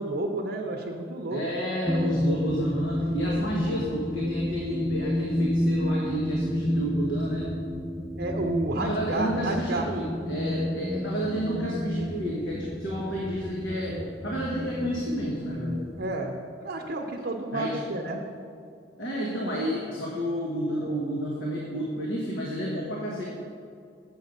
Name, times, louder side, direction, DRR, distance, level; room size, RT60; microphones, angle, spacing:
voice 1, 0.0-1.4 8.2-9.9 16.0-16.3 16.6-18.2, right 2 dB, 55° right, 1 dB, 0.6 m, -30 dB
voice 2, 1.3-7.5 8.8-15.8 17.5-17.8 19.0-23.2, equal, 85° left, -3 dB, 1.2 m, -30 dB
sound 1, 1.9-16.1, left 1 dB, ahead, 0.3 m, -30 dB
8.1 x 6.5 x 5.2 m, 2.4 s
head